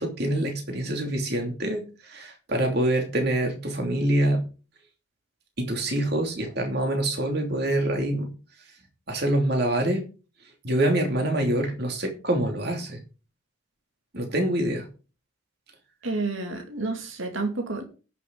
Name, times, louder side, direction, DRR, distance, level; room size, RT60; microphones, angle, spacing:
voice 1, 0.0-1.8 2.1-4.4 5.6-8.3 9.1-10.0 10.6-13.0 14.1-14.8, right 1 dB, 55° right, 3 dB, 2.9 m, -25 dB
voice 2, 16.0-17.8, right 3 dB, 80° right, 3 dB, 2.5 m, -30 dB
18.5 x 6.8 x 4.0 m, 0.35 s
head